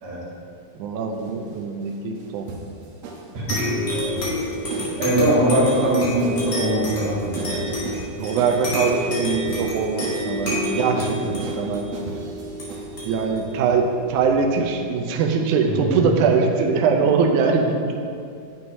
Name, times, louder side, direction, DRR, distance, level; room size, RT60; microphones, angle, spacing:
voice 1, 0.7-2.5 4.8-5.1 8.2-11.9 13.0-18.0, right 5 dB, 90° right, 3 dB, 1.8 m, -22 dB
sound 1, 1.1-13.1, right 4 dB, 70° right, 1.6 m, -37 dB
voice 2, 3.3-3.7 5.0-7.6 7.9-8.0 15.8-16.0, right 1 dB, 55° right, -7 dB, 3.0 m, -22 dB
sound 2, 3.5-14.6, left 1 dB, 40° left, 2.3 m, -28 dB
9.4 x 9.1 x 2.7 m, 2.3 s
omnidirectional pair, 4.1 m